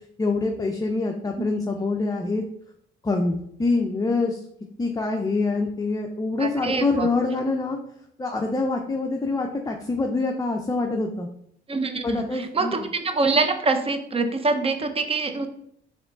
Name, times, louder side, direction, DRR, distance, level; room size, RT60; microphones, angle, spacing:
voice 1, 0.2-2.4 3.0-4.4 4.8-7.8 8.2-11.3 12.0-12.7, left 3 dB, 20° left, 2 dB, 0.5 m, -25 dB
voice 2, 6.4-7.1 11.7-15.5, right 3 dB, 30° right, 7 dB, 0.6 m, -25 dB
4.8 x 3.0 x 3.6 m, 0.68 s
cardioid pair, 90°, 20 cm